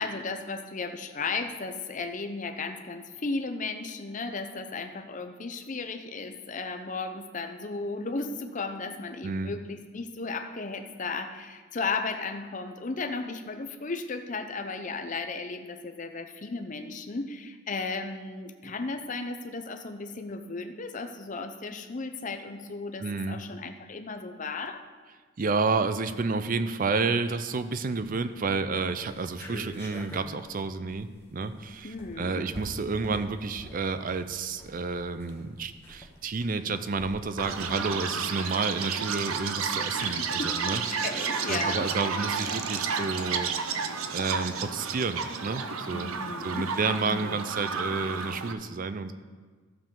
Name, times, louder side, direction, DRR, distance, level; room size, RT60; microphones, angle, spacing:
voice 1, 0.0-24.8 31.8-32.5 40.0-41.9 45.9-46.7 47.0-47.5, left 3 dB, 35° left, 7 dB, 0.6 m, -35 dB
voice 2, 23.0-23.4 25.4-40.8 41.5-46.1 46.4-49.1, right 4 dB, 40° right, 11 dB, 0.5 m, -30 dB
sound 1, 27.8-28.3 28.7-28.8 29.0-37.6, equal, 10° left, 1.2 m, -45 dB
Chirp tweet, 37.4-48.5, right 5 dB, 85° right, 0.7 m, -31 dB
14.0 x 7.1 x 3.8 m, 1.4 s
head